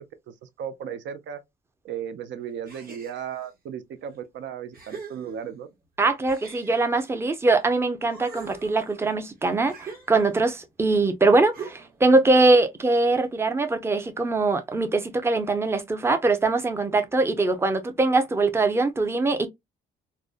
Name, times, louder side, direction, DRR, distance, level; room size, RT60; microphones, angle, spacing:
voice 1, 0.0-1.4 1.8-5.7, right 8 dB, 70° right, 0.5 m, -36 dB
sound 1, 2.6-3.5 4.1-4.2 4.7-5.7 6.3-7.7 8.0-10.6 11.5-12.1, right 5 dB, 50° right, 1.1 m, -43 dB
voice 2, 6.0-19.5, right 3 dB, 10° right, 0.5 m, -22 dB
2.5 x 2.1 x 2.3 m
cardioid pair, 90°, 20 cm